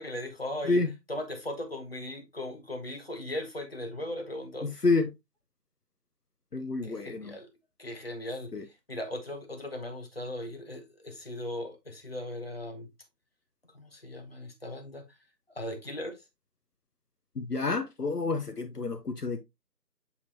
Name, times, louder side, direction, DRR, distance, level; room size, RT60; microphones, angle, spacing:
voice 1, 0.0-0.8 1.1-4.7 6.8-7.5 7.8-8.5 8.9-12.9 13.7-15.0 15.6-16.2, left 1 dB, 35° left, 1.2 m, -38 dB
voice 2, 4.6-5.1 6.5-7.3 8.5-8.6 17.4-19.4, left 3 dB, 65° left, 0.9 m, -29 dB
6.9 x 4.9 x 2.8 m
figure-of-eight pair, 165°, 50 cm